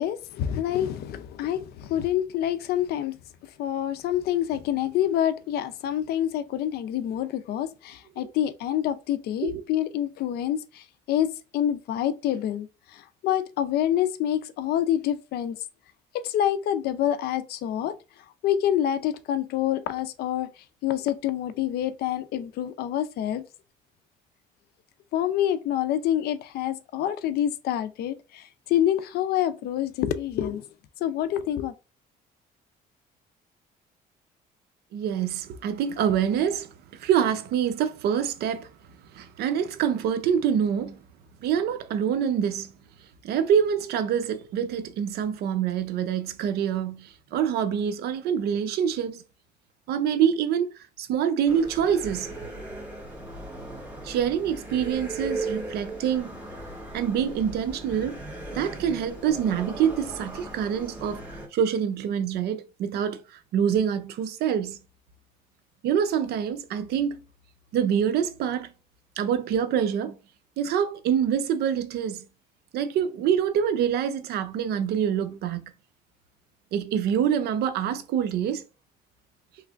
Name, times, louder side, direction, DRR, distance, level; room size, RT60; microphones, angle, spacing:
voice 1, 0.0-15.6 16.2-18.0 18.4-23.5 25.1-30.7 31.0-31.7, left 11 dB, 70° left, 0.5 m, -27 dB
voice 2, 34.9-38.7 39.1-41.0 41.4-42.7 43.2-49.2 49.9-52.3 54.0-56.4 56.9-58.2 58.5-63.2 63.5-64.8 65.8-67.2 67.7-68.7 69.2-70.2 70.6-72.3 72.7-75.7 76.7-78.6, right 8 dB, 75° right, 0.6 m, -26 dB
sound 1, 51.5-61.5, right 2 dB, 10° right, 1.8 m, -38 dB
3.5 x 3.2 x 2.4 m
cardioid pair, 110°, 17 cm